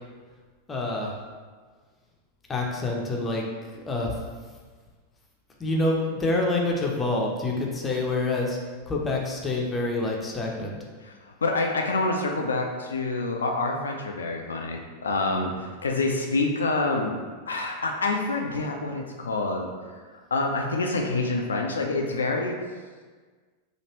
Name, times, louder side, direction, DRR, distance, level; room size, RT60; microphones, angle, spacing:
voice 1, 0.7-1.1 2.5-3.4 3.9-4.1 5.6-8.6 8.9-10.8, left 2 dB, 15° left, -1 dB, 0.5 m, -27 dB
voice 2, 11.0-17.2 17.5-19.7 20.3-22.6, left 3 dB, 70° left, 2 dB, 0.3 m, -27 dB
3.1 x 2.4 x 2.9 m, 1.5 s
figure-of-eight pair, 90°, 0 cm